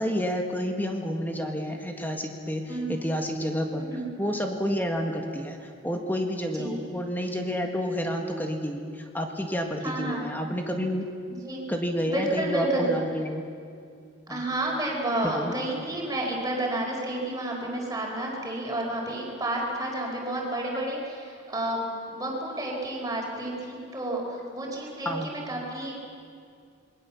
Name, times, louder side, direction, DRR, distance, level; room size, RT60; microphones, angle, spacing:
voice 1, 0.0-2.6 2.9-3.8 4.2-11.1 11.7-13.4 14.3-14.4 15.3-15.5 25.1-25.3, equal, 10° left, 3 dB, 1.8 m, -29 dB
voice 2, 9.8-10.2 11.4-11.6 12.1-12.9 14.3-25.9, right 1 dB, 15° right, -2 dB, 4.8 m, -30 dB
27.5 x 21.5 x 7.2 m, 2.4 s
head